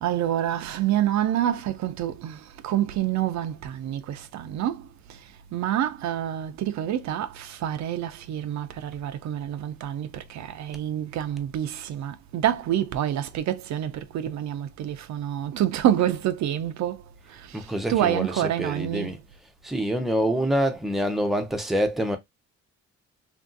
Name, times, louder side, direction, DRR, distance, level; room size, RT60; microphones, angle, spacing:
voice 1, 0.0-4.8 5.5-17.0 17.4-19.2, right 11 dB, 65° right, 0.5 m, -27 dB
voice 2, 17.5-19.2 19.6-22.2, equal, ahead, 0.6 m, -26 dB
2.9 x 2.6 x 2.4 m
cardioid pair, 90°, 30 cm